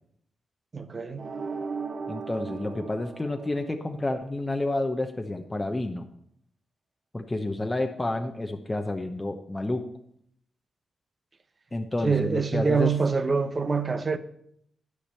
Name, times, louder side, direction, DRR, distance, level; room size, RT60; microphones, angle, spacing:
voice 1, 0.7-1.3 12.0-14.2, right 5 dB, 40° right, 0.9 m, -25 dB
sound 1, 1.2-4.2, right 5 dB, 60° right, 1.1 m, -36 dB
voice 2, 2.1-6.0 7.1-9.8 11.7-12.9, left 2 dB, 20° left, 0.9 m, -30 dB
12.0 x 5.0 x 7.0 m
cardioid pair, 75°, 0 cm